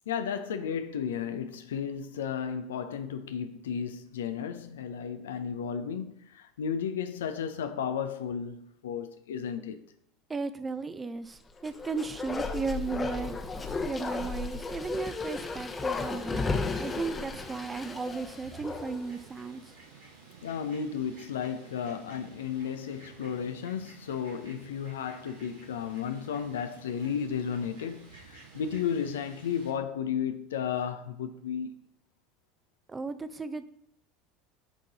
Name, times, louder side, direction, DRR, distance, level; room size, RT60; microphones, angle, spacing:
voice 1, 0.1-9.8 20.4-31.7, left 7 dB, 70° left, 0.6 m, -33 dB
voice 2, 10.3-13.4 13.8-19.6 32.9-33.7, right 4 dB, 20° right, 0.7 m, -35 dB
Bark, 11.6-19.2 19.5-19.6, left 4 dB, 20° left, 1.0 m, -34 dB
Fowl, 16.1-29.7, right 4 dB, 70° right, 2.3 m, -52 dB
10.5 x 3.8 x 4.1 m
figure-of-eight pair, 70°, 0 cm